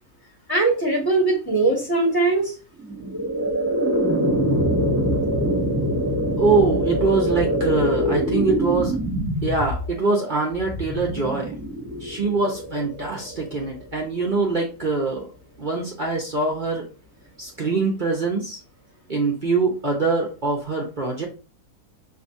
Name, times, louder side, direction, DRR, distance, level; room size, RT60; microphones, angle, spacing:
voice 1, 0.5-2.5, right 3 dB, 15° left, -1 dB, 1.7 m, -20 dB
sound 1, 2.8-13.9, equal, 10° right, 1.5 m, -24 dB
voice 2, 6.4-9.0 9.4-11.5 12.0-15.3 15.6-16.8 17.4-18.6 19.1-21.3, right 3 dB, 40° right, 0 dB, 0.8 m, -23 dB
5.9 x 2.7 x 2.6 m, 0.34 s
omnidirectional pair, 1.6 m